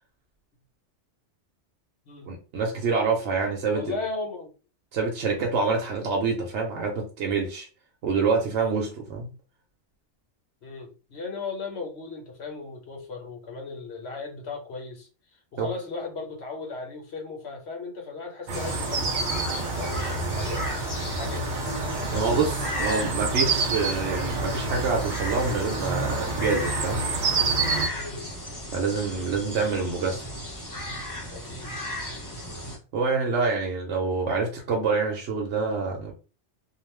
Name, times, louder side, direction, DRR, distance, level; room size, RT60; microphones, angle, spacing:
voice 1, 2.3-3.9 4.9-7.7 8.0-9.3 15.6-15.7 22.1-27.0 28.7-30.2 32.9-36.1, right 4 dB, 75° right, 0 dB, 1.0 m, -26 dB
voice 2, 3.7-4.5 5.3-5.4 10.6-15.1 15.5-19.1 19.4-20.6 21.1-21.7 22.1-22.5 27.9-28.3 31.3-31.7, left 3 dB, 70° left, 1 dB, 1.1 m, -36 dB
sound 1, 18.5-32.8, equal, 20° left, 1.0 m, -35 dB
sound 2, 18.5-27.9, right 3 dB, 55° right, 0.6 m, -28 dB
2.4 x 2.3 x 3.2 m, 0.35 s
omnidirectional pair, 1.2 m